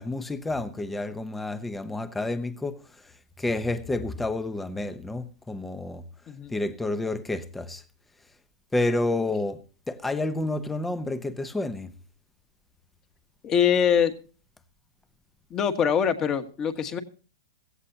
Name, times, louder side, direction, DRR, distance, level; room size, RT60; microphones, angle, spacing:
voice 1, 0.0-2.8 3.4-6.0 6.5-7.8 8.7-11.9, left 2 dB, 5° left, 0.8 m, -29 dB
voice 2, 13.4-14.1 15.5-17.0, left 8 dB, 25° left, 1.6 m, -23 dB
16.5 x 16.0 x 2.8 m
hypercardioid pair, 145°, 2 cm